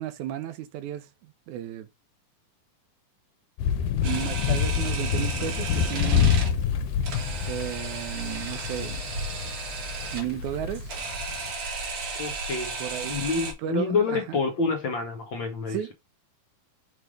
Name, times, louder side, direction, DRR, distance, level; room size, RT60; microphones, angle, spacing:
voice 1, 0.0-1.9 4.0-6.5 7.5-9.0 9.4-9.6 10.1-11.0 12.8-13.2 13.6-14.4 15.7-15.9, right 11 dB, 80° right, 1.9 m, -34 dB
sound 1, 3.6-11.5, left 8 dB, 90° left, 2.4 m, -27 dB
Camera, 4.0-13.5, right 4 dB, 60° right, 3.4 m, -34 dB
voice 2, 12.2-12.8 13.1-15.8, left 4 dB, 65° left, 1.2 m, -27 dB
6.4 x 3.4 x 5.1 m
omnidirectional pair, 3.8 m